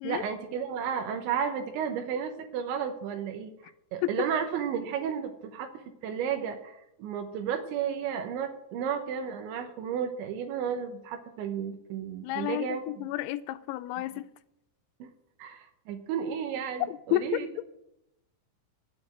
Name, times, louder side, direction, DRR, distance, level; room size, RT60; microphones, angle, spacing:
voice 1, 0.0-13.1 15.0-15.1 15.4-17.5, right 7 dB, 75° right, 5 dB, 2.9 m, -33 dB
voice 2, 12.2-14.3 17.1-17.4, left 15 dB, 85° left, 12 dB, 3.3 m, -31 dB
9.2 x 8.7 x 8.8 m, 0.84 s
omnidirectional pair, 6.0 m